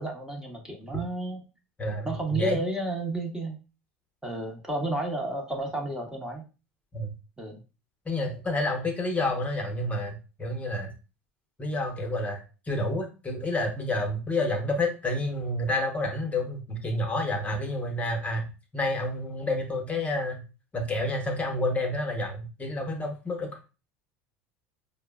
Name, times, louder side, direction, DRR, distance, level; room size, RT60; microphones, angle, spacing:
voice 1, 0.0-1.4 2.0-3.6 4.2-6.4 7.4-7.6, right 2 dB, 10° right, 0 dB, 0.8 m, -32 dB
voice 2, 1.8-2.6 6.9-7.1 8.0-10.9 11.6-12.4 12.7-20.4 20.7-23.6, left 1 dB, 20° left, 2 dB, 0.9 m, -29 dB
4.6 x 2.0 x 2.3 m, 0.32 s
hypercardioid pair, 80°, 7 cm